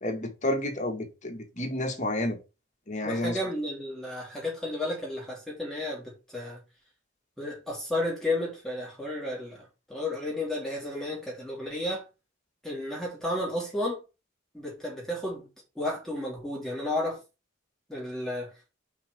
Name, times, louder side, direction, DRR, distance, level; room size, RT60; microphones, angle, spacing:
voice 1, 0.0-2.4 2.9-3.4, left 1 dB, 35° left, 2.0 m, -30 dB
voice 2, 3.0-6.6 7.4-12.0 12.6-14.0 14.5-15.5 15.7-17.2 17.9-18.5, left 1 dB, ahead, 3.0 m, -32 dB
5.8 x 4.9 x 6.3 m
head